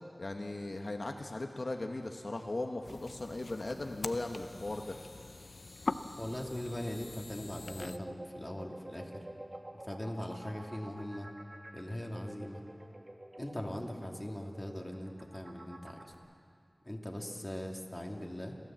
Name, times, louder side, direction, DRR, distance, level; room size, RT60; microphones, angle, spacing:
voice 1, 0.2-5.0, left 2 dB, 65° left, 3 dB, 1.1 m, -38 dB
sound 1, 2.8-8.0, left 3 dB, 85° left, 0.6 m, -43 dB
voice 2, 6.2-9.3 9.7-11.3 11.7-12.6 13.4-16.1 16.8-18.6, left 1 dB, 15° left, 0 dB, 2.5 m, -40 dB
sound 2, 7.6-16.1, right 1 dB, 45° right, 2.1 m, -49 dB
30.0 x 12.5 x 7.6 m, 2.3 s
wide cardioid pair, 55°, 0 cm